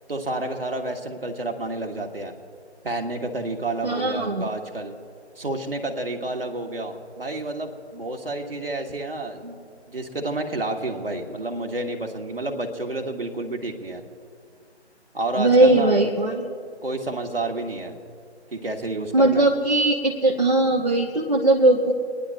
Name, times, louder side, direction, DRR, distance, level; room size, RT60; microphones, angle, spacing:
voice 1, 0.1-2.3 2.8-4.9 5.4-9.6 9.9-14.0 15.1-16.0 16.8-17.9 18.5-19.5, right 2 dB, 55° right, 3 dB, 1.4 m, -30 dB
voice 2, 3.8-4.4 15.3-16.4 19.1-21.9, right 2 dB, 40° right, -1 dB, 0.7 m, -19 dB
28.5 x 10.0 x 2.6 m, 2.3 s
figure-of-eight pair, 155°, 34 cm